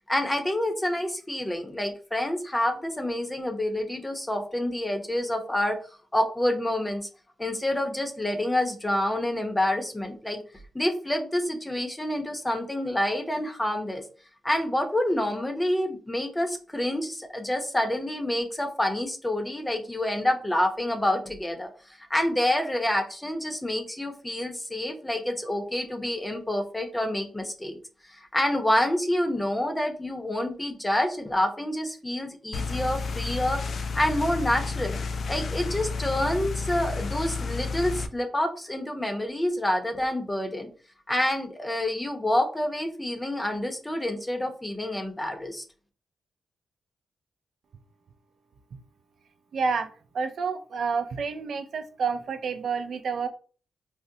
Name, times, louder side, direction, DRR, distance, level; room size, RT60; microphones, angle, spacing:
voice 1, 0.0-5.8 6.1-7.1 7.4-10.4 10.7-14.0 14.4-27.8 28.1-35.0 35.3-40.7 41.1-45.6, left 1 dB, 15° left, 5 dB, 0.7 m, -28 dB
raw lawnmowerman, 32.5-38.1, left 4 dB, 65° left, 0.3 m, -31 dB
voice 2, 49.5-49.9 50.1-53.3, right 5 dB, 70° right, 8 dB, 0.4 m, -29 dB
3.8 x 2.0 x 2.6 m, 0.40 s
cardioid pair, 65°, 0 cm